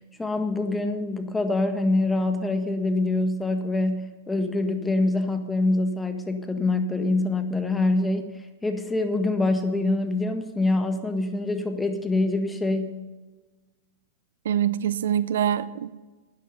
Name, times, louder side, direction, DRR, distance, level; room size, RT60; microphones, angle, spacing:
voice 1, 0.2-13.0, left 2 dB, 10° left, 1.5 m, -25 dB
voice 2, 14.4-15.9, right 10 dB, 75° right, 0.6 m, -24 dB
13.0 x 9.7 x 5.4 m
hypercardioid pair, 115°, 0 cm